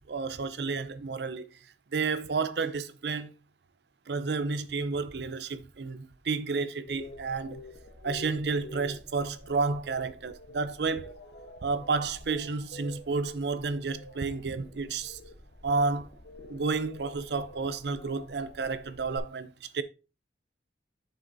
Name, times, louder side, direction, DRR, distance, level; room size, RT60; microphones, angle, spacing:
voice 1, 0.0-1.5 1.9-3.3 4.1-7.6 8.0-11.1 11.6-15.2 15.6-16.1 16.5-19.8, right 4 dB, 70° right, 0.6 m, -31 dB
sound 1, 6.9-19.2, left 1 dB, 80° left, 1.2 m, -48 dB
7.8 x 6.1 x 2.7 m
head